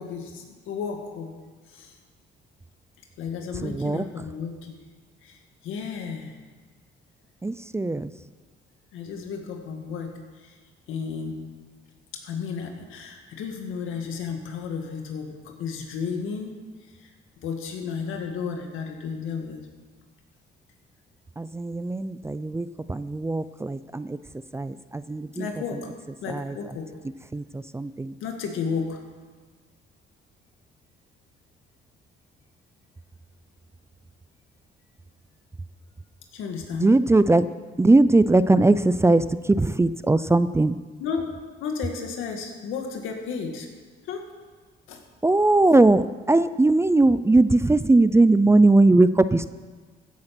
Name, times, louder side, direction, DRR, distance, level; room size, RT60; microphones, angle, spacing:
voice 1, 0.0-1.4 1.7-1.9 3.2-4.8 5.2-6.4 8.9-10.6 10.9-11.5 12.1-16.6 17.0-17.1 17.4-19.7 25.4-25.9 26.2-27.0 28.2-29.0 36.3-36.9 41.0-41.3 41.6-43.7 44.0-44.3 44.9-45.0, left 6 dB, 85° left, 4 dB, 1.9 m, -33 dB
voice 2, 3.5-4.0 7.4-8.1 21.4-24.2 24.5-25.5 26.3-26.6 27.3-28.1 36.7-37.4 37.8-40.8 45.2-49.5, right 2 dB, 15° right, 14 dB, 0.5 m, -20 dB
15.5 x 8.7 x 5.9 m, 1.4 s
cardioid pair, 90°, 20 cm